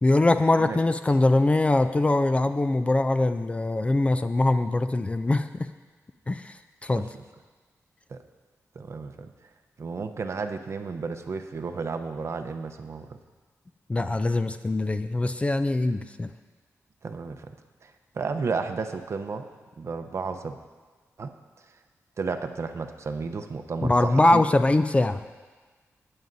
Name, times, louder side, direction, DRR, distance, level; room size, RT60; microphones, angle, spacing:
voice 1, 0.0-5.7 6.3-6.5 6.8-7.1 13.9-16.3 23.8-25.2, left 2 dB, 20° left, 10 dB, 0.4 m, -22 dB
voice 2, 8.8-9.3 9.8-13.2 17.0-17.5 17.8-19.5 19.8-20.6 21.2-21.3 22.2-24.4, right 4 dB, 55° right, 7 dB, 0.7 m, -32 dB
18.5 x 8.7 x 2.7 m, 1.4 s
wide cardioid pair, 105°, 6 cm